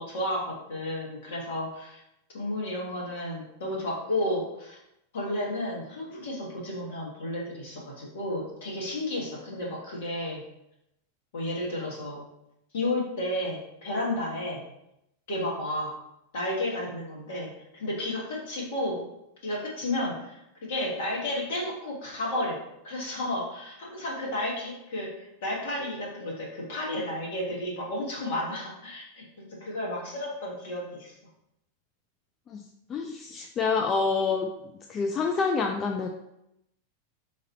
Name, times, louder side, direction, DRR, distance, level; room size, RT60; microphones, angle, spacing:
voice 1, 0.0-2.0 2.3-4.8 5.1-10.4 11.3-12.3 12.7-14.6 15.3-15.9 16.3-19.0 19.4-22.6 22.8-31.1, left 1 dB, 55° left, -3 dB, 1.4 m, -32 dB
voice 2, 32.9-34.5 34.9-36.1, left 4 dB, 25° left, 3 dB, 0.3 m, -27 dB
3.9 x 2.6 x 4.0 m, 0.83 s
figure-of-eight pair, 90°, 0 cm